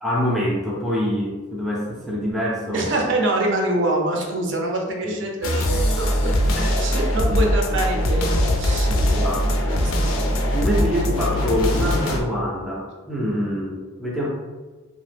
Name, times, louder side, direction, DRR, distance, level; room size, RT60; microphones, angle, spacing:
voice 1, 0.0-3.0 5.0-5.2 6.5-7.4 9.1-9.6 10.5-14.3, equal, ahead, -5 dB, 0.4 m, -25 dB
voice 2, 2.7-6.3 6.8-9.0 9.6-10.4, right 2 dB, 60° right, 1 dB, 0.5 m, -25 dB
sound 1, 5.4-12.2, equal, 80° left, 0.5 m, -21 dB
2.9 x 2.0 x 3.2 m, 1.3 s
head